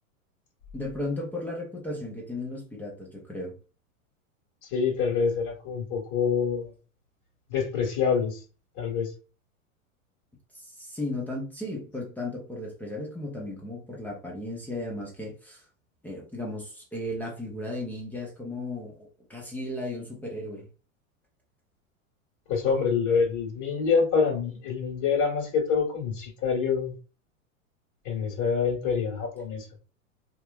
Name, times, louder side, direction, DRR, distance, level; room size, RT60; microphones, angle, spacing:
voice 1, 0.7-3.6 10.6-15.7 16.0-20.7, left 1 dB, 5° left, 0.3 m, -35 dB
voice 2, 4.6-6.7 7.5-8.4 8.7-9.1 22.5-27.0 28.0-29.7, left 6 dB, 45° left, 1.4 m, -26 dB
2.7 x 2.3 x 2.3 m
hypercardioid pair, 115°, 42 cm